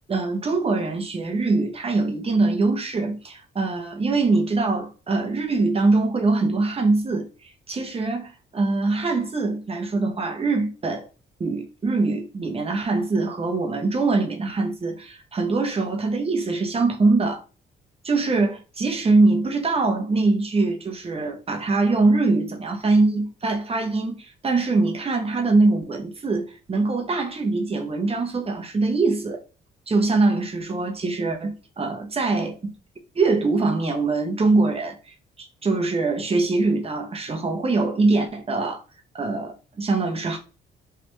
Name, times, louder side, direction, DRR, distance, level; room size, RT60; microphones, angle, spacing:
voice 1, 0.1-7.3 7.7-11.1 11.4-17.4 18.0-29.4 29.9-32.7 33.1-35.0 35.4-38.8 39.1-40.4, right 3 dB, 30° right, 0.8 m, -23 dB
3.3 x 2.5 x 3.1 m
cardioid pair, 90°, 20 cm